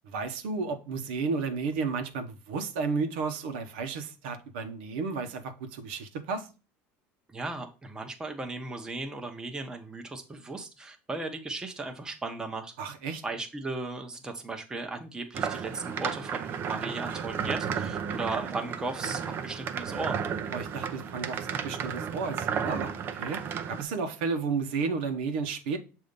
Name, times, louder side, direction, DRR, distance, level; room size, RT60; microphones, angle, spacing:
voice 1, 0.1-6.5 12.8-13.2 20.5-25.8, right 4 dB, 85° right, 1.0 m, -32 dB
voice 2, 7.3-12.7 13.2-20.2, right 3 dB, 15° right, 0.9 m, -36 dB
sound 1, 15.3-23.8, right 7 dB, 40° right, 0.6 m, -33 dB
6.9 x 2.7 x 5.2 m
cardioid pair, 130°, 5 cm